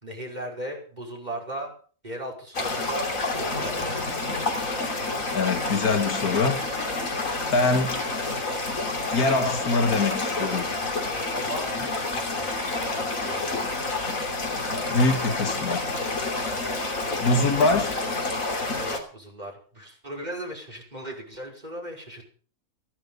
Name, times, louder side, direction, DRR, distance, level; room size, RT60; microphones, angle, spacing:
voice 1, 0.0-1.7 2.0-4.0 10.9-12.5 13.2-13.6 16.4-16.7 18.7-22.3, right 1 dB, 30° right, 5.7 m, -37 dB
sound 1, 2.5-19.0, left 2 dB, 65° left, 3.4 m, -29 dB
voice 2, 5.3-6.7 7.1-7.2 7.5-7.9 9.1-10.7 14.9-15.9 17.2-18.0, left 3 dB, 85° left, 2.3 m, -23 dB
16.0 x 13.5 x 5.6 m
omnidirectional pair, 1.5 m